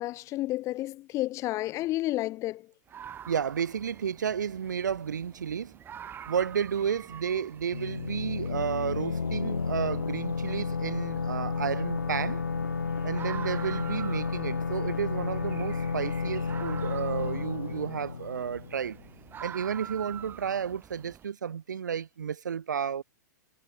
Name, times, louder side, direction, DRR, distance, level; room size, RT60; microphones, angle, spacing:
voice 1, 0.0-2.7 7.3-7.4, left 16 dB, 30° left, 1.1 m, -31 dB
sound 1, 2.9-21.2, right 9 dB, 20° right, 2.6 m, -47 dB
voice 2, 3.3-5.8 6.3-12.4 13.0-19.0 19.4-23.0, right 7 dB, 80° right, 0.4 m, -32 dB
sound 2, 7.7-19.2, left 5 dB, 85° left, 0.9 m, -32 dB
sound 3, 11.3-18.0, right 24 dB, 45° right, 3.6 m, -57 dB
figure-of-eight pair, 110°, 10 cm